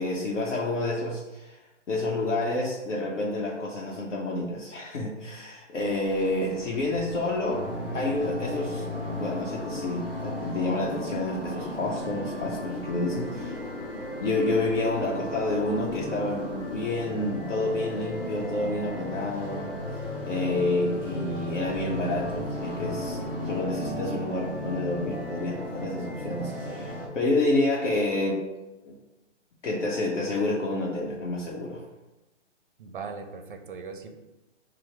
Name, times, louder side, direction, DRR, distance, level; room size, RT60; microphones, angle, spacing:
voice 1, 0.0-1.6 1.9-7.7 7.9-8.8 9.2-13.6 14.2-19.7 20.2-28.4 28.8-29.0 29.6-31.8, left 2 dB, 75° left, -3 dB, 0.8 m, -29 dB
sound 1, 5.8-23.6, left 2 dB, 50° left, 0.6 m, -48 dB
sound 2, 7.5-27.1, equal, 5° left, 0.8 m, -35 dB
voice 2, 32.8-34.2, right 5 dB, 45° right, 6 dB, 0.5 m, -39 dB
4.7 x 2.0 x 4.3 m, 1.0 s
hypercardioid pair, 160°, 36 cm